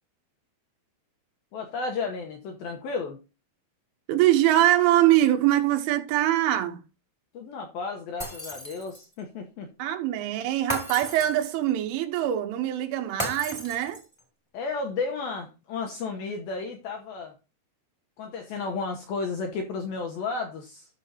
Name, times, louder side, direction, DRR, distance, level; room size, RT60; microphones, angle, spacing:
voice 1, 1.5-3.2 7.3-9.7 14.5-17.4 18.2-20.9, left 4 dB, 75° left, 2.2 m, -33 dB
voice 2, 4.1-6.8 9.8-14.0, right 13 dB, 85° right, 3.6 m, -23 dB
Shatter, 8.2-9.1 10.7-11.7 13.2-14.2, equal, 10° left, 1.1 m, -35 dB
12.5 x 6.7 x 2.8 m
omnidirectional pair, 5.5 m